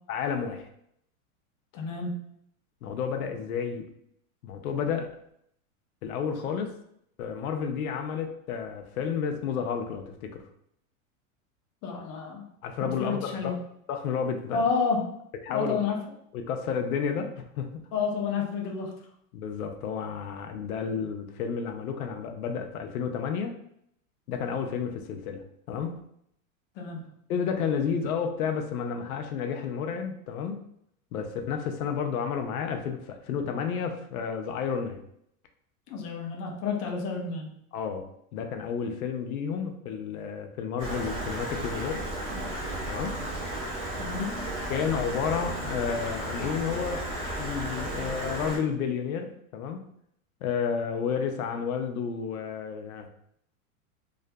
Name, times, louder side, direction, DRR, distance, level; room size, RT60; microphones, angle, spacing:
voice 1, 0.1-0.7 2.8-3.9 4.4-5.1 6.0-6.7 7.2-10.4 12.6-13.6 13.9-14.7 15.4-15.8 16.3-17.7 19.3-23.5 24.3-25.9 27.3-30.6 31.1-35.0 37.7-38.1 38.3-42.1 42.9-43.2 44.7-47.0 47.4-49.8 50.4-53.1, left 6 dB, 90° left, 5 dB, 0.5 m, -31 dB
voice 2, 1.7-2.2 11.8-12.5 12.8-13.6 14.5-15.2 15.5-16.0 17.9-18.9 26.8-27.1 35.9-37.5 44.0-44.5, left 5 dB, 35° left, 1 dB, 0.5 m, -30 dB
Stream, 40.8-48.6, right 1 dB, 15° right, 0.4 m, -34 dB
2.6 x 2.4 x 2.2 m, 0.72 s
supercardioid pair, 140°, 42 cm